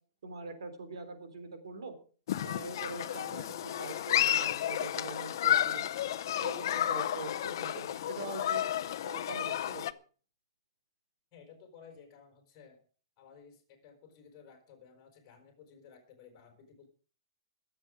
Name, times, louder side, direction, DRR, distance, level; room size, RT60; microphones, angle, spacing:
voice 1, 0.2-1.9 2.4-5.9 6.4-8.6 9.0-9.9, right 4 dB, 85° right, 8 dB, 3.9 m, -43 dB
Human group actions, 2.3-9.9, left 11 dB, 50° left, 0.7 m, -32 dB
voice 2, 11.3-12.8 13.2-16.9, left 6 dB, 25° left, 3 dB, 4.6 m, -56 dB
22.5 x 7.9 x 5.1 m, 0.41 s
hypercardioid pair, 175°, 3 cm